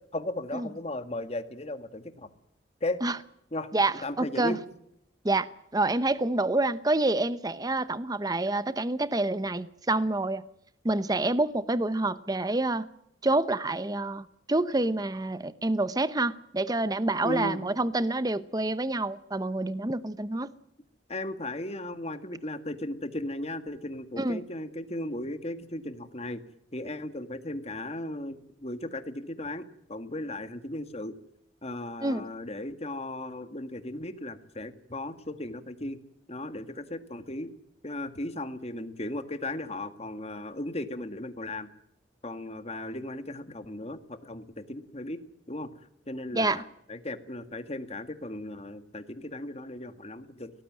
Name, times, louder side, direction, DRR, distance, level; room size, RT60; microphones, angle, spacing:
voice 1, 0.1-2.3 2.8-3.0 3.5-3.7 4.0-4.6 17.2-17.6 21.1-26.4 26.7-31.1 31.6-36.0 36.3-37.5 37.8-41.7 42.2-45.2 45.5-46.6 46.9-50.5, left 1 dB, 35° left, 1.9 m, -36 dB
voice 2, 3.7-4.6 5.2-10.4 10.8-12.9 13.2-20.5 24.2-24.4 32.0-32.2 46.3-46.6, right 2 dB, 20° right, 0.8 m, -27 dB
23.5 x 18.5 x 7.6 m
head